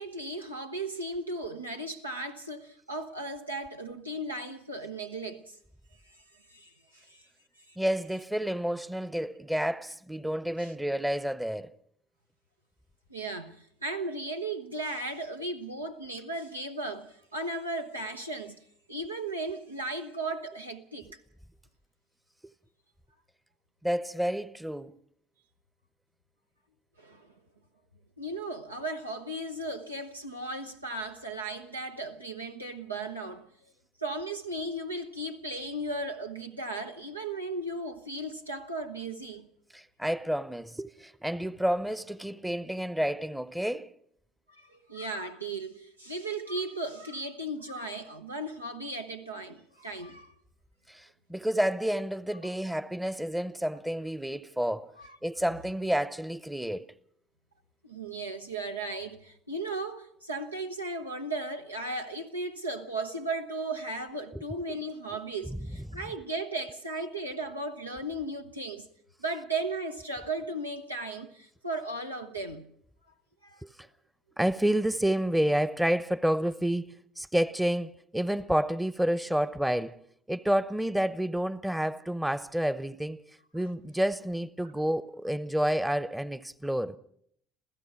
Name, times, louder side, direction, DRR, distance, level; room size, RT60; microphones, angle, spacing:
voice 1, 0.0-5.6 6.0-6.2 6.5-7.3 7.7-7.8 10.6-10.7 13.1-18.6 18.9-21.2 27.0-27.3 28.2-33.5 34.0-39.5 44.5-50.3 55.0-55.2 57.8-68.9 69.2-72.7 73.4-73.6, right 2 dB, 85° right, 1.0 m, -36 dB
voice 2, 7.8-11.7 23.8-24.9 39.7-43.9 50.9-54.9 55.2-56.9 65.4-65.6 65.9-66.0 73.6-73.7 74.4-80.0 80.3-83.2 83.5-87.0, equal, 5° right, 0.9 m, -29 dB
28.0 x 16.0 x 5.9 m
figure-of-eight pair, 60°, 0 cm